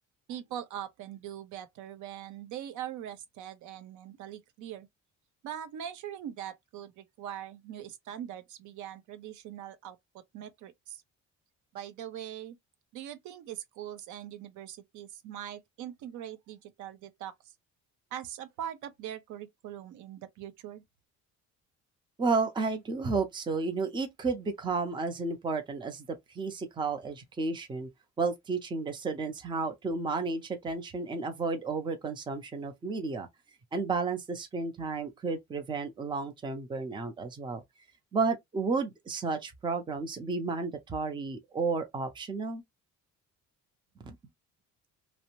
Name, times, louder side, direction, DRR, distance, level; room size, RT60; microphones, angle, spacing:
voice 1, 0.3-4.9 5.4-11.0 11.7-12.6 12.9-17.3 18.1-20.8, right 10 dB, 75° right, 0.6 m, -42 dB
voice 2, 22.2-26.1 26.3-27.9 28.2-33.3 33.7-37.6 38.1-42.6 44.0-44.2, right 4 dB, 15° right, 0.5 m, -32 dB
2.6 x 2.0 x 2.8 m
cardioid pair, 160°, 30 cm